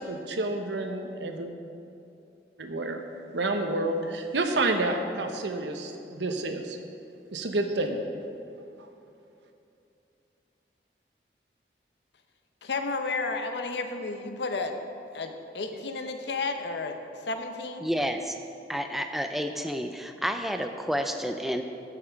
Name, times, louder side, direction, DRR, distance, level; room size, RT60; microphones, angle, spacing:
voice 1, 0.0-1.5 2.6-3.0 3.3-6.8 7.3-8.0, right 2 dB, 90° right, 5 dB, 0.9 m, -29 dB
voice 2, 12.6-14.7 15.1-17.0 17.3-17.9, left 3 dB, 80° left, 6 dB, 0.8 m, -32 dB
voice 3, 17.8-18.4 18.7-21.6, equal, ahead, 6 dB, 0.4 m, -30 dB
14.0 x 5.8 x 4.6 m, 2.7 s
head